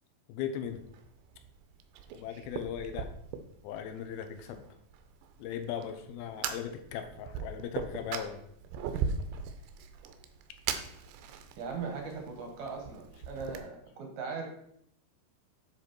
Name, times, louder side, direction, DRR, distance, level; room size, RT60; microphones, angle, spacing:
voice 1, 0.3-0.9 2.1-3.1 3.6-4.6 5.4-8.4, left 9 dB, 80° left, 7 dB, 2.4 m, -38 dB
Fire, 0.7-13.6, right 6 dB, 85° right, 2.8 m, -40 dB
voice 2, 11.6-14.5, right 5 dB, 70° right, 2 dB, 1.8 m, -39 dB
9.7 x 3.8 x 4.5 m, 0.71 s
omnidirectional pair, 4.7 m